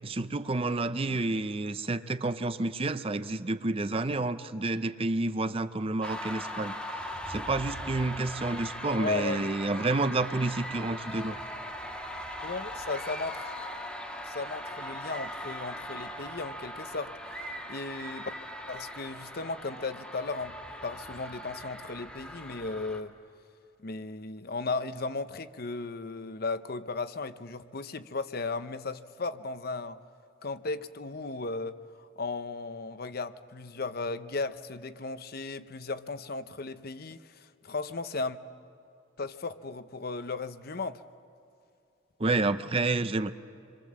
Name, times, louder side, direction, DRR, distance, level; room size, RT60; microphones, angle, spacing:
voice 1, 0.0-6.8 7.3-11.4 12.9-13.0 42.2-43.3, right 2 dB, 30° right, 0.6 m, -29 dB
sound 1, 6.0-23.0, equal, 5° left, 1.7 m, -40 dB
voice 2, 8.9-9.5 12.4-13.5 14.2-17.1 17.7-18.3 18.7-20.6 20.8-23.1 23.8-30.0 30.4-38.4 39.2-41.0, left 3 dB, 50° left, 0.8 m, -36 dB
27.5 x 23.0 x 7.5 m
head